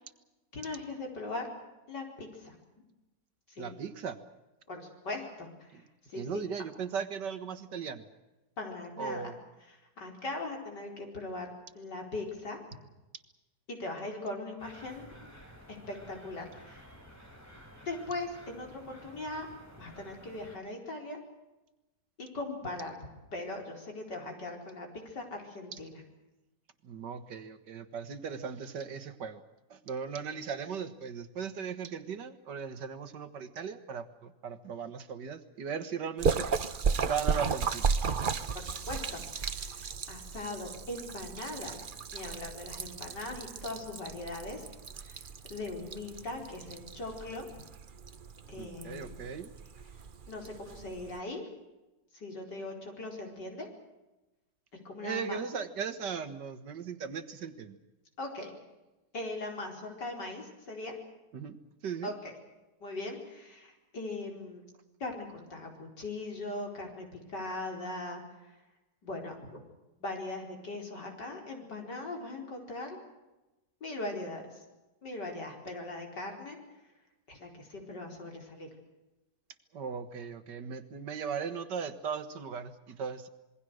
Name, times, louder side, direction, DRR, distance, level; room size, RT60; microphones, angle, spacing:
voice 1, 0.5-1.5 1.9-2.6 3.5-3.8 4.7-6.4 8.6-9.3 10.0-12.6 13.7-15.2 15.7-16.9 17.8-19.5 19.8-21.2 22.2-22.9 23.3-26.0 38.5-41.8 42.1-44.7 45.0-45.2 45.5-47.5 48.5-49.2 50.3-51.4 52.1-53.7 54.7-55.4 58.2-58.5 59.1-60.9 62.0-62.3 62.8-64.6 65.0-68.5 69.0-69.6 70.0-73.0 73.8-74.6 75.0-76.6 77.3-78.7, left 2 dB, 70° left, 1 dB, 5.2 m, -40 dB
voice 2, 3.6-4.2 5.7-5.8 6.2-8.0 9.0-9.3 25.7-25.8 26.8-29.4 29.7-36.5 37.0-37.9 48.6-49.5 55.0-57.8 61.3-61.6 61.8-62.1 79.7-83.3, right 6 dB, 75° right, 11 dB, 2.0 m, -38 dB
sound 1, 14.6-20.6, equal, 10° left, 4.4 m, -53 dB
Splash splatter, 36.2-51.2, right 5 dB, 40° right, 0.7 m, -35 dB
27.0 x 22.0 x 6.5 m, 1.0 s
omnidirectional pair, 1.9 m